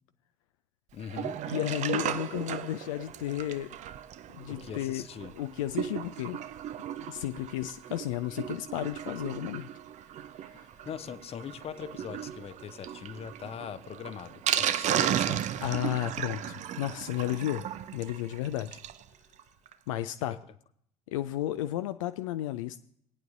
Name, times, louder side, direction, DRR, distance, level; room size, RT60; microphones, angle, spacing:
voice 1, 0.9-1.4 4.5-5.3 10.8-15.4, left 8 dB, 35° left, 14 dB, 0.7 m, -41 dB
Sink (filling or washing), 1.0-19.0 19.4-19.5 19.7-19.8 20.1-20.2, right 10 dB, 40° right, 0.6 m, -35 dB
voice 2, 1.5-3.7 4.3-5.1 5.3-6.4 7.1-9.7 10.5-10.7 15.6-17.6 17.9-18.8 19.9-20.4 21.1-22.8, left 13 dB, 65° left, 10 dB, 0.4 m, -33 dB
19.0 x 9.1 x 2.6 m, 0.67 s
figure-of-eight pair, 60°, 18 cm